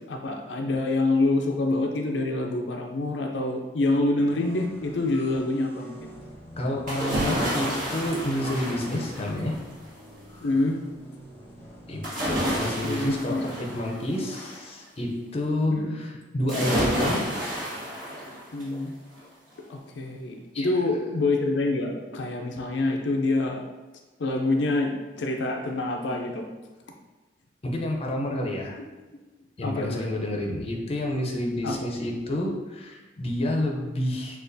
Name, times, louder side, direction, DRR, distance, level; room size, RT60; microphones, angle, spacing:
voice 1, 0.1-6.0 10.4-10.8 12.8-13.5 15.7-16.0 18.5-18.9 19.7-23.6 24.2-26.4 29.6-30.1 31.6-31.9, left 2 dB, 85° left, 2 dB, 0.5 m, -26 dB
sound 1, 4.2-13.2, equal, 15° left, 0.9 m, -47 dB
voice 2, 6.6-9.6 11.9-17.2 20.5-20.7 27.6-28.8 29.6-34.4, left 1 dB, 35° left, 0 dB, 0.6 m, -29 dB
sound 2, 6.9-9.7 12.0-14.6 16.5-18.8 19.2-19.3, equal, 50° right, 1.5 m, -30 dB
6.4 x 2.4 x 2.6 m, 1.2 s
head